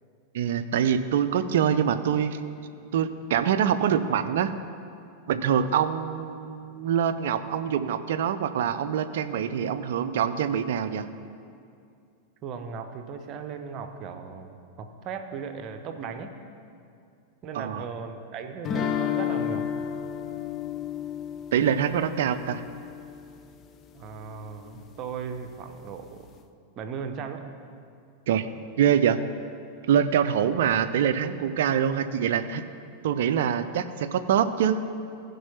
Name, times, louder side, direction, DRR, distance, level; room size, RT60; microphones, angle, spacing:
voice 1, 0.3-2.4 2.9-4.5 5.3-11.1 17.5-17.8 21.5-22.6 28.3-28.5 28.8-29.2 29.9-32.6 33.0-34.8, right 8 dB, 55° right, 10 dB, 0.5 m, -24 dB
voice 2, 12.4-16.3 17.4-19.7 23.9-26.4 26.8-27.5, right 6 dB, 35° right, 7 dB, 0.8 m, -37 dB
sound 1, 18.7-23.6, left 9 dB, 30° left, 0.5 m, -32 dB
15.0 x 5.4 x 5.8 m, 2.4 s
figure-of-eight pair, 90°, 0 cm